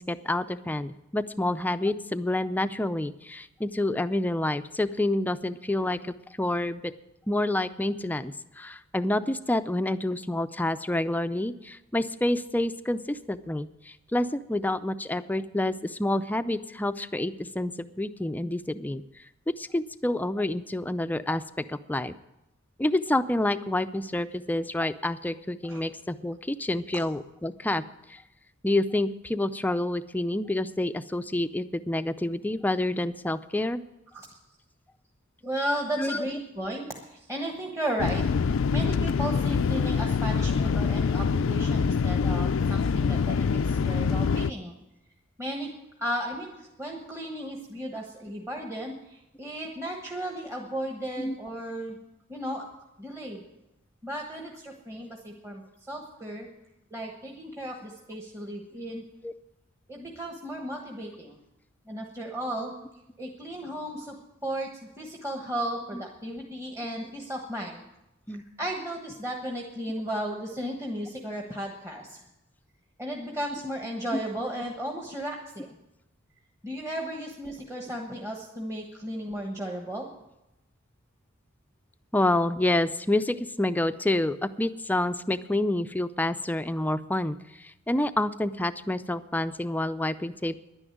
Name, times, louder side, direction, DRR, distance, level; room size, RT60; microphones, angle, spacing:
voice 1, 0.0-6.9 7.3-19.0 19.6-22.1 22.8-27.8 28.1-28.2 28.6-33.8 36.0-36.2 51.2-51.3 59.2-59.3 65.9-66.0 68.3-68.4 74.1-74.2 82.1-90.6, left 1 dB, 10° left, 12 dB, 0.4 m, -28 dB
voice 2, 35.4-44.8 45.4-45.7 46.0-52.0 52.3-52.6 53.0-53.4 54.0-56.5 56.9-59.0 59.9-61.4 61.9-62.7 63.2-64.2 64.4-67.8 68.6-72.2 73.0-75.8 76.6-80.1, right 1 dB, 15° right, 0 dB, 1.3 m, -35 dB
sound 1, 38.0-44.5, left 5 dB, 70° left, 0.4 m, -25 dB
11.0 x 9.8 x 9.3 m, 0.93 s
head